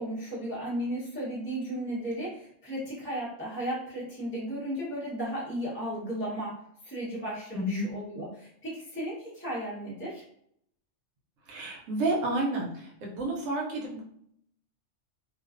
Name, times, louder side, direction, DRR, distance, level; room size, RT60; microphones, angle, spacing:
voice 1, 0.0-10.2, right 1 dB, 10° left, -8 dB, 0.6 m, -35 dB
voice 2, 7.5-7.8 11.5-14.0, right 1 dB, 90° right, -2 dB, 1.0 m, -30 dB
2.3 x 2.3 x 2.4 m, 0.69 s
omnidirectional pair, 1.3 m